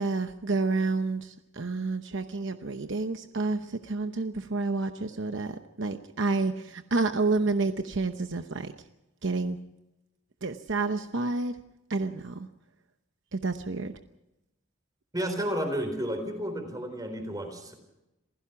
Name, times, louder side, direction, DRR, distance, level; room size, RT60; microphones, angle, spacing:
voice 1, 0.0-8.7 9.2-9.6 10.4-11.5 11.9-12.5 13.3-13.9, right 3 dB, 65° right, 8 dB, 0.9 m, -29 dB
voice 2, 15.1-17.7, equal, 20° right, 6 dB, 4.0 m, -32 dB
27.5 x 16.0 x 6.0 m, 0.93 s
head